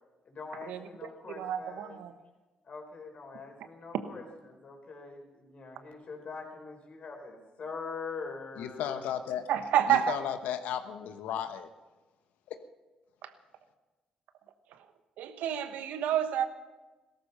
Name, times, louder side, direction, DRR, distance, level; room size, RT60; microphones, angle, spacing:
voice 1, 0.2-2.0 2.6-9.0, left 4 dB, 55° left, 2 dB, 4.6 m, -43 dB
voice 2, 1.3-2.1 3.9-4.0 9.5-10.2 13.2-13.3 15.2-16.4, right 10 dB, 80° right, 10 dB, 1.1 m, -29 dB
voice 3, 8.6-9.4 9.9-11.7 12.5-12.6, left 9 dB, 80° left, 9 dB, 1.1 m, -34 dB
17.0 x 14.0 x 5.5 m, 1.2 s
supercardioid pair, 55°, 3 cm